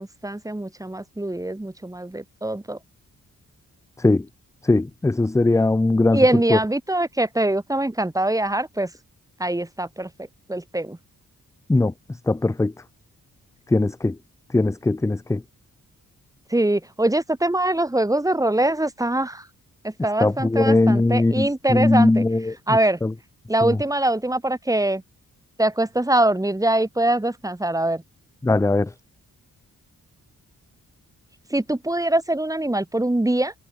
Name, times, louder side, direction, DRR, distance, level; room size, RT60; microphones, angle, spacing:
voice 1, 0.0-2.8 6.1-8.9 9.4-10.1 10.5-11.0 16.5-19.4 19.8-22.2 22.7-23.0 23.5-25.0 25.6-28.0 31.5-33.5, right 1 dB, 10° right, 3.2 m, -23 dB
voice 2, 4.7-6.2 6.5-6.6 11.7-11.9 12.3-12.7 13.7-14.1 14.5-15.4 20.2-22.5 23.0-23.1 23.6-23.8 28.4-28.9, left 2 dB, 10° left, 0.5 m, -19 dB
wide cardioid pair, 130°, 34 cm